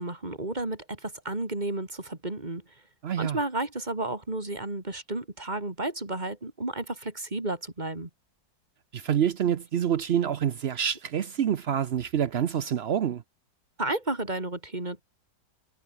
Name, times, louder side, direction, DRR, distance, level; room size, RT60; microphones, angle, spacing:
voice 1, 0.0-2.6 3.2-8.1 13.8-15.0, right 2 dB, 20° right, 3.2 m, -32 dB
voice 2, 3.0-3.4 8.9-13.2, right 9 dB, 70° right, 0.6 m, -27 dB
omnidirectional pair, 2.0 m